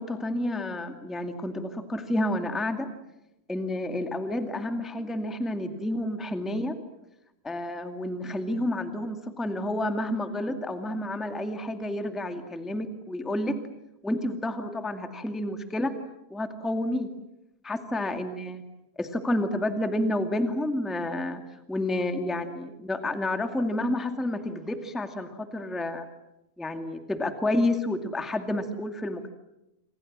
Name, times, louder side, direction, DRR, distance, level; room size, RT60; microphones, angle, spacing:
voice 1, 0.0-2.9 3.5-6.7 7.4-13.6 14.0-15.9 16.3-17.1 17.6-18.6 19.0-21.4 21.7-26.0 26.6-29.3, left 1 dB, ahead, 7 dB, 0.6 m, -30 dB
28.5 x 26.5 x 7.5 m, 0.90 s
omnidirectional pair, 4.4 m